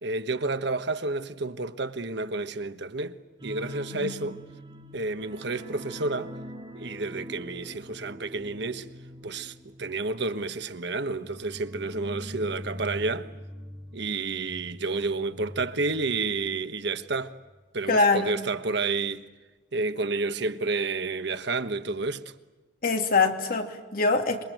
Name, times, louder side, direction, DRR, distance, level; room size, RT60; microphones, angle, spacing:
voice 1, 0.0-4.4 4.9-6.4 6.7-8.9 9.2-13.3 13.9-17.3 17.7-19.2 19.7-22.3, right 3 dB, 65° right, 1.3 m, -30 dB
sound 1, 3.4-16.7 17.0-17.1 17.5-17.6, equal, 25° right, 5.6 m, -43 dB
voice 2, 17.9-18.3 22.8-24.4, left 3 dB, 55° left, 2.8 m, -23 dB
27.0 x 24.0 x 9.2 m
head